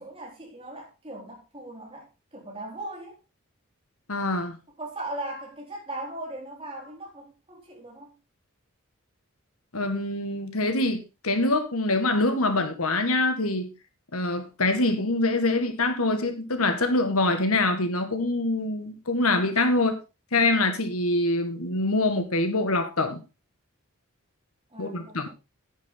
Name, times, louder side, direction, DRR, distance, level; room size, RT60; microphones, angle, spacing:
voice 1, 0.0-3.2 4.8-8.1 24.7-25.3, right 2 dB, 25° right, 4.3 m, -39 dB
voice 2, 4.1-4.6 9.7-13.7 14.1-20.0 20.3-23.2 24.8-25.3, left 2 dB, 85° left, 1.9 m, -25 dB
10.0 x 9.8 x 3.9 m
head